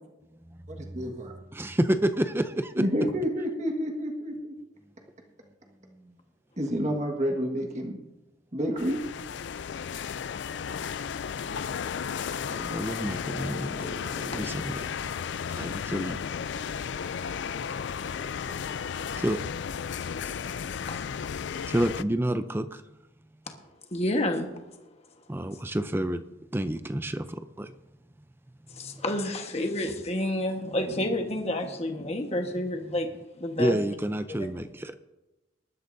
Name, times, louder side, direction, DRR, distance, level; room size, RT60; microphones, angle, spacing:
voice 1, 0.9-1.3 2.8-4.5 6.6-8.0 8.5-9.0, equal, 35° right, 1 dB, 1.6 m, -29 dB
voice 2, 1.5-2.8 6.0-6.1 12.4-15.2 15.6-16.2 19.2-19.4 21.7-22.8 25.3-26.2 26.5-27.7 32.9-33.0 33.6-34.9, right 1 dB, 10° right, 10 dB, 0.5 m, -29 dB
sound 1, 8.8-22.0, left 7 dB, 65° left, 0.4 m, -34 dB
voice 3, 23.9-24.5 28.7-33.1 33.4-33.8 34.3-34.4, left 1 dB, 30° left, 4 dB, 1.4 m, -29 dB
20.0 x 11.5 x 2.7 m, 1.0 s
head